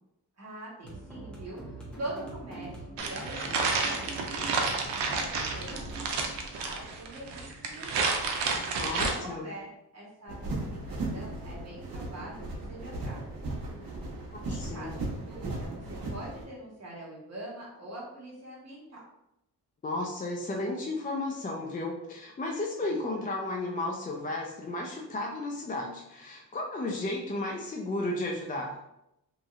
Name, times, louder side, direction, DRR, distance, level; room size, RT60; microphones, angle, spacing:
voice 1, 0.4-4.8 5.1-6.1 6.5-8.2 8.9-9.7 9.9-13.2 14.5-19.0 22.8-23.2, right 1 dB, 40° right, -5 dB, 1.3 m, -44 dB
sound 1, 0.8-7.8, right 2 dB, ahead, 0.9 m, -44 dB
sound 2, 3.0-9.1, right 4 dB, 90° right, 0.6 m, -30 dB
voice 2, 8.8-9.5 14.3-15.0 19.8-28.8, left 2 dB, 20° left, 0 dB, 0.3 m, -33 dB
sound 3, 10.3-16.4, right 2 dB, 55° right, 1.0 m, -36 dB
3.0 x 2.7 x 2.4 m, 0.84 s
cardioid pair, 90°, 41 cm